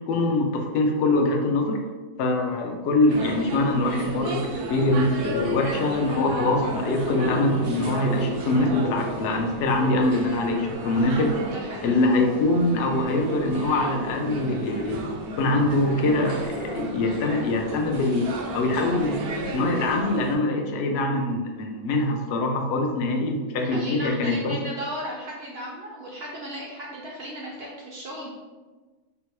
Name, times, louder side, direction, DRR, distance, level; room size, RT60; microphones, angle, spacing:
voice 1, 0.1-1.8 2.2-11.3 11.8-15.0 15.4-18.3 18.5-19.2 19.5-24.6, left 2 dB, 70° left, 2 dB, 0.6 m, -23 dB
sound 1, 3.1-20.4, right 1 dB, 85° right, 1.1 m, -33 dB
voice 2, 11.4-11.9 23.6-28.3, equal, 65° right, -3 dB, 0.6 m, -36 dB
3.7 x 2.1 x 3.0 m, 1.3 s
omnidirectional pair, 1.6 m